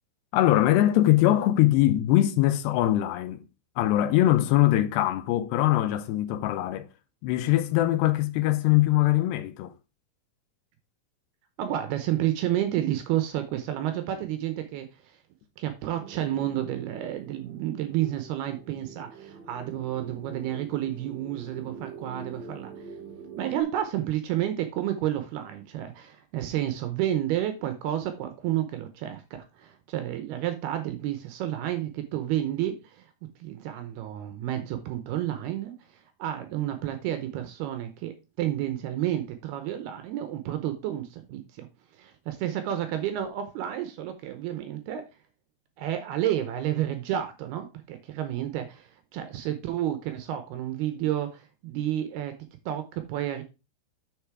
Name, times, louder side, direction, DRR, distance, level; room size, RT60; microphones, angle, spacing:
voice 1, 0.3-3.4 3.8-6.9 7.2-9.7, left 14 dB, 80° left, 2.9 m, -22 dB
voice 2, 11.6-15.2 15.6-22.9 23.4-29.2 29.5-33.1 33.4-41.7 41.9-45.0 45.8-52.3 52.7-53.4, right 12 dB, 75° right, 2.7 m, -30 dB
sound 1, 16.0-23.6, right 5 dB, 45° right, 3.5 m, -45 dB
7.0 x 6.7 x 4.6 m
omnidirectional pair, 4.9 m